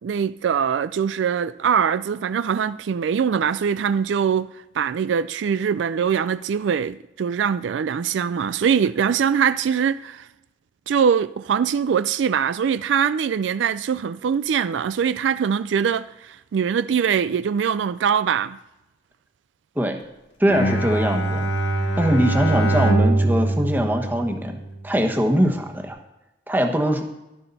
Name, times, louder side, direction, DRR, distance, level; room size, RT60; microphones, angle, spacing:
voice 1, 0.0-4.5 4.7-10.3 10.9-18.6, right 7 dB, 85° right, 0.4 m, -22 dB
voice 2, 20.4-21.5 22.0-24.6 24.8-26.0 26.5-27.0, equal, 10° right, 1.1 m, -21 dB
Bowed string instrument, 20.5-24.9, right 2 dB, 75° left, 1.8 m, -23 dB
12.0 x 11.0 x 4.1 m
head